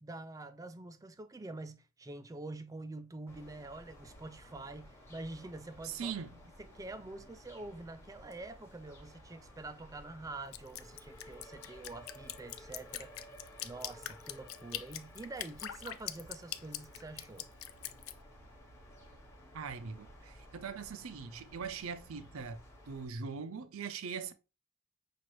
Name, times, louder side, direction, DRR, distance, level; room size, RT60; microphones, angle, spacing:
voice 1, 0.0-6.1 6.6-13.1 13.6-17.5, right 2 dB, 15° right, 0.3 m, -46 dB
sound 1, 3.3-23.1, equal, 15° left, 1.0 m, -55 dB
voice 2, 5.8-6.3 19.5-22.6 22.9-24.3, right 6 dB, 75° right, 0.5 m, -41 dB
Drip, 10.5-18.1, left 12 dB, 70° left, 0.4 m, -42 dB
6.0 x 2.5 x 3.0 m
head